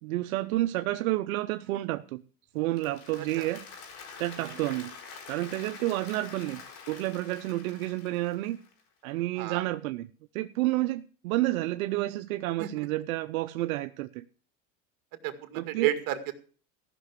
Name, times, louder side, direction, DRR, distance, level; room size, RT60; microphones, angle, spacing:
voice 1, 0.0-2.2 2.5-3.7 4.2-4.9 5.3-6.6 6.9-8.6 9.0-10.1 10.3-14.2 15.5-15.9, right 17 dB, 85° right, 0.7 m, -30 dB
Applause, 2.6-8.8, left 5 dB, 60° left, 4.9 m, -46 dB
voice 2, 15.2-16.3, right 12 dB, 55° right, 2.2 m, -32 dB
15.0 x 6.0 x 8.2 m
supercardioid pair, 130°, 41 cm